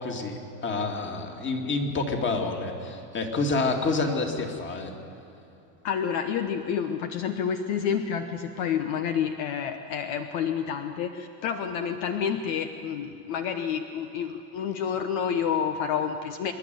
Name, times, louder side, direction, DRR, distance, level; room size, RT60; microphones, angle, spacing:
voice 1, 0.0-4.9, left 3 dB, 25° left, 3 dB, 2.4 m, -28 dB
voice 2, 5.8-16.5, left 7 dB, 55° left, 7 dB, 1.2 m, -29 dB
26.5 x 11.0 x 9.4 m, 2.9 s
supercardioid pair, 130°, 48 cm